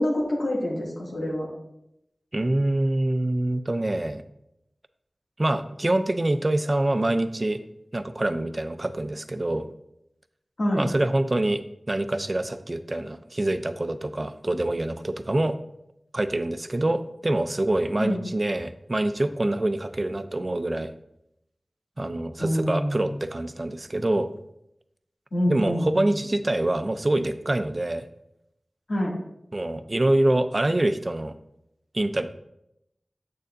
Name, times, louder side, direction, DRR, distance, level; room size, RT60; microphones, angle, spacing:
voice 1, 0.0-1.5 10.6-10.8 18.0-18.2 22.4-23.2 25.3-26.1 28.9-29.2, equal, 85° left, -4 dB, 2.2 m, -26 dB
voice 2, 2.3-4.2 5.4-7.6 7.9-9.7 10.8-15.6 16.1-20.9 22.0-24.3 25.5-28.0 29.5-31.4 31.9-32.3, right 1 dB, 45° right, 11 dB, 0.5 m, -25 dB
8.4 x 6.6 x 2.6 m, 0.82 s
wide cardioid pair, 55°, 0 cm